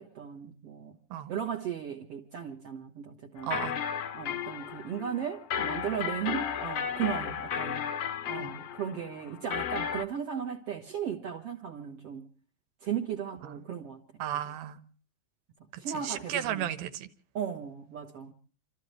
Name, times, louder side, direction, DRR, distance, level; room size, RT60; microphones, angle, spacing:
voice 1, 0.0-1.0 1.3-3.5 4.1-7.9 8.3-12.3 12.8-14.0 15.8-16.7 17.3-18.3, right 8 dB, 50° right, 2.0 m, -36 dB
sound 1, 3.4-10.0, left 8 dB, 75° left, 1.4 m, -34 dB
voice 2, 3.4-3.8 8.3-8.5 13.4-13.6 14.2-14.8 15.7-17.1, right 10 dB, 90° right, 3.1 m, -35 dB
29.0 x 13.5 x 3.2 m
omnidirectional pair, 4.2 m